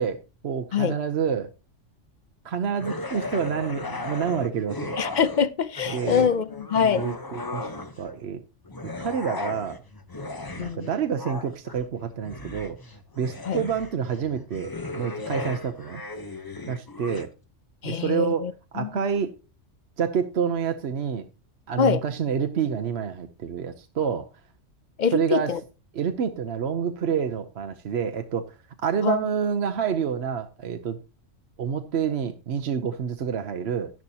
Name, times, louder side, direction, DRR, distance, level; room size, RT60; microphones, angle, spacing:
voice 1, 0.0-1.5 2.4-4.9 5.9-6.3 7.0-7.7 8.0-8.4 8.8-9.8 10.6-12.8 13.2-16.0 16.7-17.3 17.8-18.5 18.7-19.3 20.0-21.2 21.7-24.3 25.1-25.5 25.9-28.4 28.8-31.0 31.6-33.9, right 7 dB, 60° right, 1.0 m, -28 dB
sound 1, 2.8-5.5 5.8-8.1 8.7-17.3, left 2 dB, 20° left, 0.7 m, -36 dB
voice 2, 5.0-7.1 10.6-10.9 13.5-13.6 17.8-18.9 21.8-22.0 25.0-25.6 29.0-29.2, left 7 dB, 55° left, 0.5 m, -24 dB
11.5 x 10.5 x 2.8 m
omnidirectional pair, 1.3 m